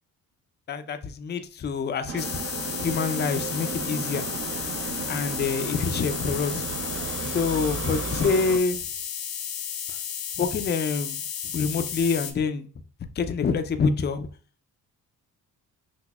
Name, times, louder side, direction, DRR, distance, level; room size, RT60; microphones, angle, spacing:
voice 1, 0.7-2.3 2.8-4.3 5.1-6.7 7.2-8.8 9.9-10.0 10.4-11.2 11.5-12.7 13.2-14.3, left 5 dB, 30° left, 0.5 m, -26 dB
sound 1, 2.1-8.6, right 6 dB, 40° right, 0.6 m, -34 dB
sound 2, 2.2-12.3, left 8 dB, 65° left, 0.8 m, -33 dB
6.0 x 2.0 x 2.3 m
supercardioid pair, 65°, 38 cm